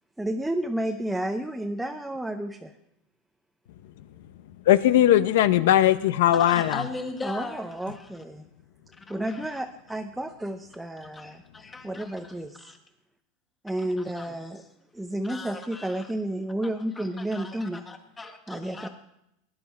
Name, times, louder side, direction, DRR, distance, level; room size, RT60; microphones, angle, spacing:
voice 1, 0.2-2.7 7.2-8.5 9.1-11.4 11.8-12.7 13.6-14.6 14.9-17.8 18.5-18.9, right 1 dB, 5° right, 4 dB, 0.7 m, -31 dB
voice 2, 4.7-6.8, left 12 dB, 80° left, 14 dB, 0.8 m, -19 dB
voice 3, 6.3-8.1 9.0-9.6 11.1-12.8 14.1-14.3 15.3-16.1 16.9-18.9, left 3 dB, 15° left, 5 dB, 1.5 m, -39 dB
18.5 x 10.5 x 4.3 m, 0.84 s
supercardioid pair, 145°, 0 cm